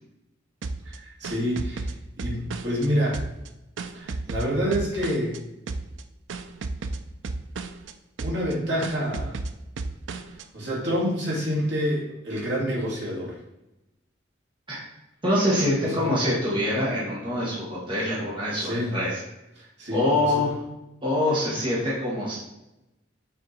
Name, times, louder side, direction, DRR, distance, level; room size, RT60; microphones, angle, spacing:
sound 1, 0.6-2.9 3.1-5.4 5.7-6.0 6.3-7.9 8.2-8.5 8.8-10.4, right 3 dB, 80° right, 0.5 m, -33 dB
voice 1, 0.8-1.9 2.2-3.2 3.9-5.4 8.2-9.4 10.5-13.3 15.8-16.1 18.6-19.0 19.6-20.4, equal, 65° right, -5 dB, 2.3 m, -27 dB
voice 2, 15.2-19.1 19.9-20.5 21.0-22.4, left 1 dB, 25° right, -7 dB, 1.5 m, -25 dB
6.6 x 3.7 x 4.2 m, 0.93 s
head